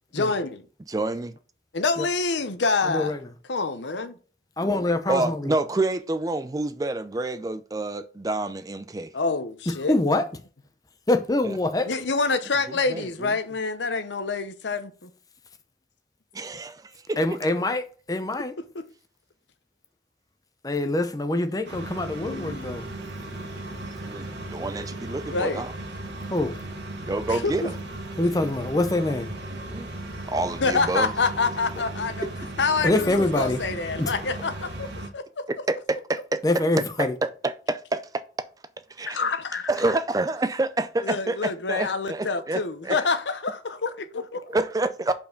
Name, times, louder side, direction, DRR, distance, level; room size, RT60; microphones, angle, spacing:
voice 1, 0.1-0.7 1.7-3.1 3.5-4.2 9.1-10.0 11.8-15.1 18.7-18.8 22.2-22.8 25.2-25.6 27.3-27.5 30.6-32.3 32.6-35.4 39.0-39.7 41.0-44.6, left 4 dB, 80° left, 0.8 m, -27 dB
voice 2, 0.9-1.3 5.1-9.1 11.4-11.6 12.9-13.3 16.3-17.2 24.0-25.7 27.1-27.7 29.7-29.9 30.3-31.1 35.7-36.4 37.0-38.0 39.0-39.2 39.7-43.0 44.5-45.1, right 2 dB, 20° right, 0.4 m, -28 dB
voice 3, 2.8-3.3 4.6-5.6 9.9-10.2 11.1-11.9 17.2-18.5 20.6-22.9 26.3-26.5 28.2-29.3 32.8-33.6 34.0-34.1 36.4-37.2, left 2 dB, 20° left, 0.7 m, -25 dB
sound 1, 21.6-35.1, right 2 dB, 70° right, 1.4 m, -36 dB
5.5 x 4.5 x 5.1 m
head